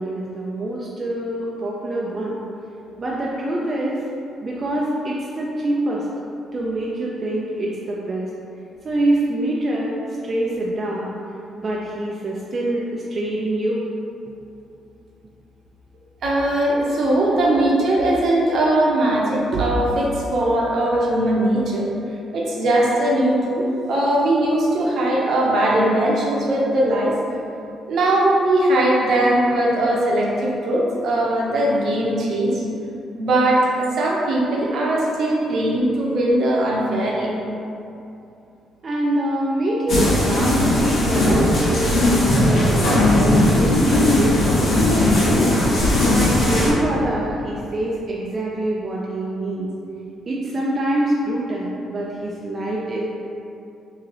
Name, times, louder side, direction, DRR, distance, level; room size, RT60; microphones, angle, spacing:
voice 1, 0.0-2.4 3.0-4.0 4.4-6.1 6.5-8.3 8.8-11.1 11.6-13.9 38.8-49.7 50.3-53.0, right 1 dB, 35° right, -4 dB, 0.4 m, -25 dB
voice 2, 16.2-21.9 22.3-27.1 27.9-32.6 33.2-33.7 34.0-37.3, right 1 dB, 65° right, -3 dB, 0.7 m, -20 dB
sound 1, 39.9-46.7, left 1 dB, 70° left, 1.0 m, -17 dB
3.2 x 2.7 x 3.7 m, 2.7 s
cardioid pair, 95°, 0 cm